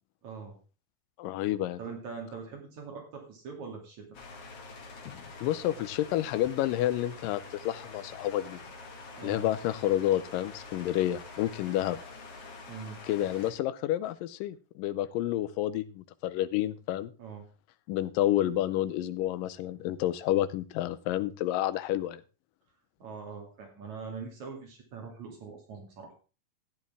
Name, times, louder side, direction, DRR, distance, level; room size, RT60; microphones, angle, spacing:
voice 1, 0.2-0.6 1.8-4.1 9.2-9.5 12.7-13.0 17.2-17.4 23.0-26.1, right 5 dB, 60° right, 2 dB, 3.7 m, -42 dB
voice 2, 1.2-1.8 5.1-8.6 9.2-12.0 13.1-17.1 17.9-22.2, left 13 dB, 85° left, 13 dB, 2.3 m, -30 dB
sound 1, 4.1-13.5, left 3 dB, 50° left, 2.7 m, -46 dB
12.5 x 10.0 x 3.6 m, 0.33 s
omnidirectional pair, 3.9 m